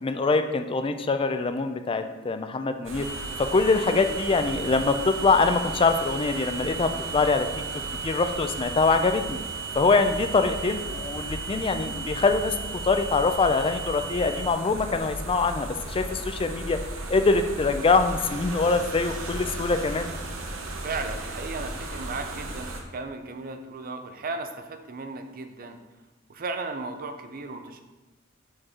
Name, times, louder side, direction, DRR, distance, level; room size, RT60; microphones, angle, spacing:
voice 1, 0.0-3.1 3.4-7.5 8.0-9.4 9.8-12.6 12.8-16.8 17.1-20.1, left 3 dB, 25° left, 8 dB, 0.4 m, -24 dB
sound 1, 2.8-22.8, right 1 dB, 75° right, 0.8 m, -36 dB
sound 2, 3.0-14.5, right 6 dB, 15° right, 0.8 m, -37 dB
voice 2, 20.8-25.8 26.3-27.8, right 3 dB, 45° right, 7 dB, 0.5 m, -35 dB
4.6 x 4.4 x 4.9 m, 1.1 s
head